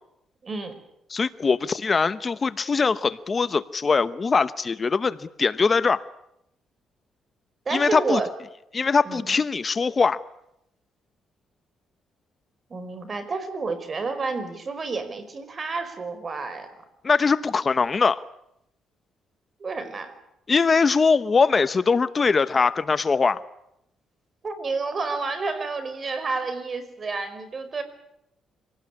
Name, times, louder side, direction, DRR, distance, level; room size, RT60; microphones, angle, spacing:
voice 1, 0.4-0.8 7.6-8.3 9.0-9.4 12.7-16.7 19.6-20.1 24.4-27.8, right 3 dB, 40° right, 11 dB, 5.0 m, -30 dB
voice 2, 1.1-6.0 7.7-8.2 8.7-10.2 17.0-18.2 20.5-23.4, left 4 dB, 35° left, 14 dB, 0.9 m, -22 dB
26.0 x 18.5 x 9.9 m, 0.82 s
cardioid pair, 90°, 0 cm